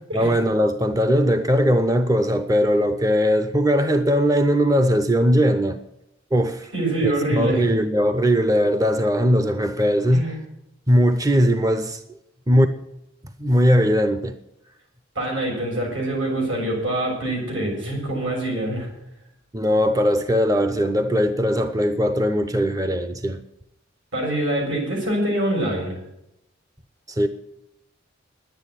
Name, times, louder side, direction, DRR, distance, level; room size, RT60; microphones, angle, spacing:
voice 1, 0.1-5.8 6.3-6.7 7.0-10.3 10.9-12.0 12.5-12.7 13.4-14.4 19.5-23.4 27.1-27.3, equal, 20° right, 0.7 m, -19 dB
voice 2, 6.7-7.7 10.1-10.4 15.2-18.9 24.1-26.0, right 1 dB, 80° right, 7.2 m, -25 dB
10.5 x 9.2 x 9.9 m
head